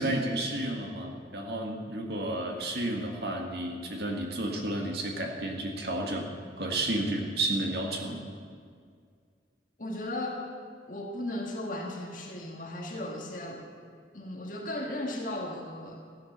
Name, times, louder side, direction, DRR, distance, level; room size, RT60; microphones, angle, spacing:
voice 1, 0.0-6.3 6.6-8.2, right 1 dB, 65° right, 2 dB, 1.9 m, -31 dB
voice 2, 9.8-10.4 10.9-13.6 14.1-16.0, left 1 dB, 50° left, 0 dB, 1.9 m, -36 dB
14.5 x 10.0 x 6.8 m, 2.1 s
head